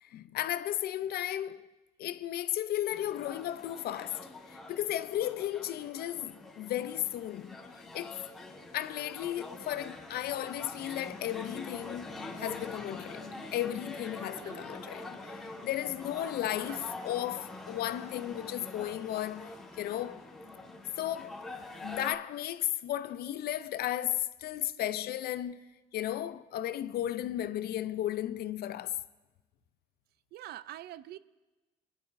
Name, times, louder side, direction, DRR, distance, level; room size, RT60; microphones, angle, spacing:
voice 1, 0.0-1.7 2.0-8.2 8.7-20.3 21.0-21.4 21.8-25.6 25.9-29.0, left 12 dB, 60° left, 0.5 m, -35 dB
Port Bar, 2.9-22.1, left 2 dB, ahead, 2.5 m, -45 dB
voice 2, 14.3-14.7 16.6-16.9 30.3-31.2, right 13 dB, 65° right, 0.4 m, -45 dB
22.0 x 11.0 x 2.6 m
supercardioid pair, 65°, 18 cm